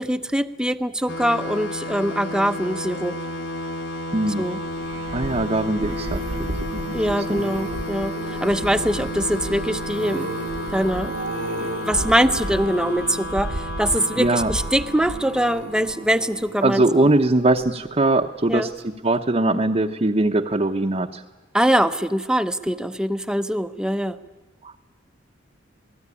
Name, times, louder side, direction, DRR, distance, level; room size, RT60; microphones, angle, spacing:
voice 1, 0.0-3.2 4.4-4.6 6.9-10.3 10.7-11.1 11.6-16.8 18.5-18.7 21.5-24.2, equal, 5° right, 10 dB, 0.8 m, -23 dB
sound 1, 1.1-16.5, left 1 dB, 90° left, 2.1 m, -32 dB
voice 2, 4.1-4.4 5.1-6.2 6.6-7.0 7.3-7.4 14.2-14.5 16.6-21.2 24.6-24.8, right 2 dB, 30° right, 1 dB, 0.9 m, -21 dB
sound 2, 4.7-18.0 18.6-18.9 19.1-19.2, right 1 dB, 75° right, 1.3 m, -33 dB
27.5 x 19.0 x 9.8 m, 1.2 s
head